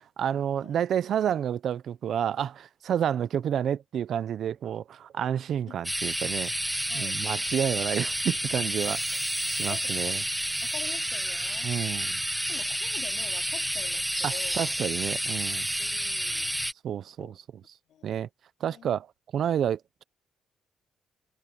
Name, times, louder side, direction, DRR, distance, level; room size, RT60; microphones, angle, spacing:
voice 1, 0.2-6.5 6.9-9.2 9.5-10.2 11.6-12.2 14.2-15.7 16.8-17.4 18.0-18.3 18.6-19.1 19.3-20.0, right 9 dB, 65° right, 0.8 m, -29 dB
sound 1, 5.8-16.7, equal, 5° right, 0.8 m, -30 dB
voice 2, 9.7-10.2 10.6-11.7 12.5-14.6 15.8-16.5 17.2-17.3 17.9-18.2 18.6-19.0, left 10 dB, 70° left, 4.3 m, -46 dB
cardioid pair, 90°, 0 cm